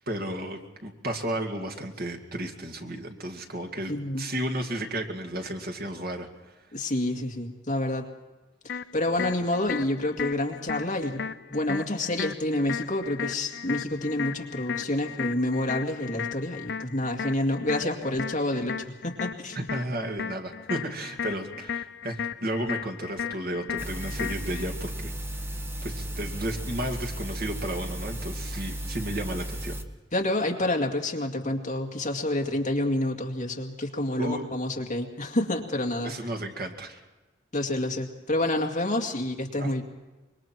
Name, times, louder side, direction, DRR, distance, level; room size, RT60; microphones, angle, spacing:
voice 1, 0.1-6.5 9.2-9.3 19.5-25.1 25.8-29.8 34.2-34.6 36.0-37.0 39.6-39.7, right 1 dB, 55° right, 2 dB, 2.4 m, -33 dB
voice 2, 3.9-4.2 6.7-8.1 8.6-11.2 11.5-19.6 30.1-36.1 37.5-39.8, left 1 dB, 40° left, 2 dB, 2.1 m, -28 dB
sound 1, 8.7-24.7, left 7 dB, 65° left, 0.5 m, -36 dB
sound 2, 23.8-29.8, right 1 dB, 15° right, 1.3 m, -34 dB
25.5 x 22.5 x 4.6 m, 1.1 s
head